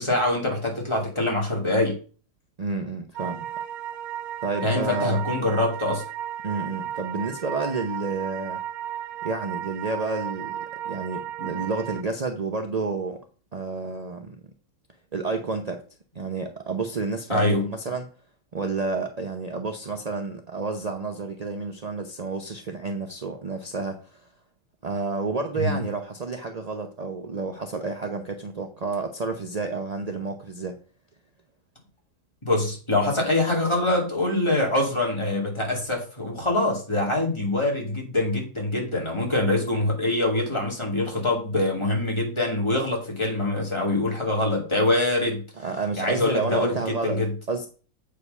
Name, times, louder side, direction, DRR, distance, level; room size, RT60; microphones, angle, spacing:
voice 1, 0.0-2.0 4.6-6.0 17.3-17.7 25.6-25.8 32.4-45.4 46.0-47.3, left 2 dB, 15° left, -1 dB, 2.5 m, -24 dB
voice 2, 2.6-3.5 4.4-5.2 6.4-8.6 9.2-13.2 13.5-14.4 15.1-15.8 16.1-18.1 18.5-24.2 24.8-30.8 45.6-47.2 47.5-47.7, right 4 dB, 45° right, 5 dB, 0.5 m, -30 dB
sound 1, 3.2-12.0, right 10 dB, 70° right, 1.0 m, -34 dB
8.1 x 5.2 x 5.4 m, 0.39 s
omnidirectional pair, 1.8 m